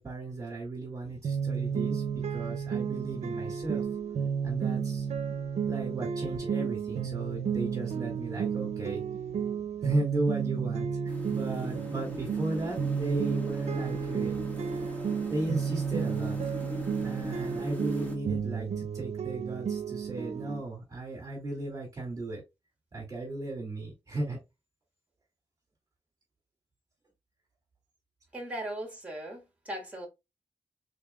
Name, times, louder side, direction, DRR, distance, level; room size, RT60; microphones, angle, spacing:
voice 1, 0.0-2.0 2.3-3.9 4.4-5.1 5.7-9.0 9.8-14.5 15.3-16.4 17.0-22.4 22.9-24.4, right 2 dB, 30° right, 2.1 m, -35 dB
sound 1, 1.2-20.6, right 7 dB, 70° right, 0.5 m, -32 dB
sound 2, 11.1-18.2, left 1 dB, 15° left, 1.5 m, -41 dB
voice 2, 28.3-30.1, right 1 dB, 10° right, 1.7 m, -38 dB
5.9 x 3.7 x 2.3 m
wide cardioid pair, 130°, 11 cm